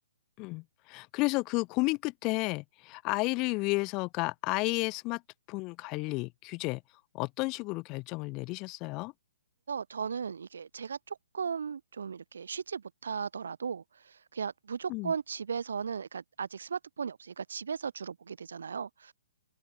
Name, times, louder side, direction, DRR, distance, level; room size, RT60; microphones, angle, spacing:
voice 1, 0.4-5.2 5.5-6.8 7.1-9.1 14.9-15.1, left 25 dB, 25° left, 0.8 m, -32 dB
voice 2, 9.7-19.1, right 6 dB, 80° right, 0.9 m, -37 dB
open air
hypercardioid pair, 155°, 0 cm